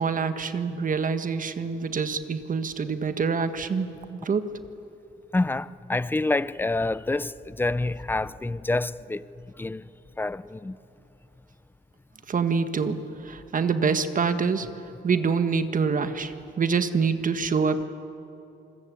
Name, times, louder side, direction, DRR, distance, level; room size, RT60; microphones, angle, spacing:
voice 1, 0.0-4.5 12.3-13.0 13.2-14.7 15.0-17.8, right 5 dB, 40° right, 1.5 m, -26 dB
voice 2, 5.3-9.3 9.6-9.8 10.2-10.8, left 2 dB, 10° left, 0.6 m, -27 dB
27.5 x 21.5 x 8.5 m
cardioid pair, 90°, 20 cm